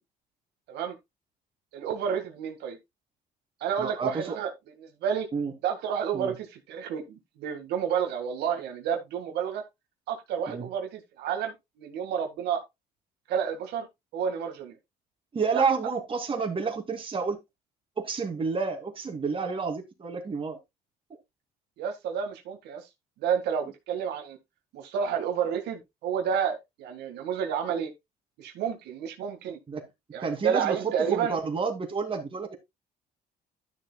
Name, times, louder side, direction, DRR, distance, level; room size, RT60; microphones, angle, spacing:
voice 1, 1.7-2.8 3.6-4.5 4.8-5.3 5.6-9.6 10.1-12.6 13.3-13.9 14.1-14.8 15.5-15.6 21.8-22.8 23.2-24.4 24.7-27.9 28.4-29.6 30.1-31.4, right 8 dB, 80° right, 1.8 m, -30 dB
voice 2, 3.8-4.4 5.3-5.5 6.1-6.3 10.5-10.7 15.3-17.4 18.0-20.6 29.7-29.9 30.2-32.6, right 5 dB, 30° right, 2.6 m, -30 dB
12.5 x 6.8 x 2.3 m
cardioid pair, 110°, 17 cm